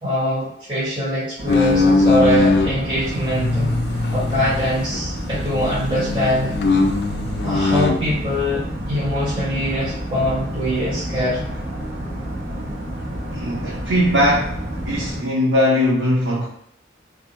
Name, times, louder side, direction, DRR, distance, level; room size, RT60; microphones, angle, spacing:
voice 1, 0.0-3.7 4.1-6.5 7.4-11.4, equal, 25° right, -11 dB, 1.3 m, -23 dB
sound 1, 1.4-15.2, equal, 90° right, 0.9 m, -29 dB
sound 2, 1.5-2.7 3.3-5.0 5.3-8.0, left 3 dB, 60° left, 0.3 m, -20 dB
voice 2, 13.3-14.6 14.9-16.5, left 1 dB, 75° right, -5 dB, 0.6 m, -19 dB
2.6 x 2.2 x 2.9 m, 0.71 s
head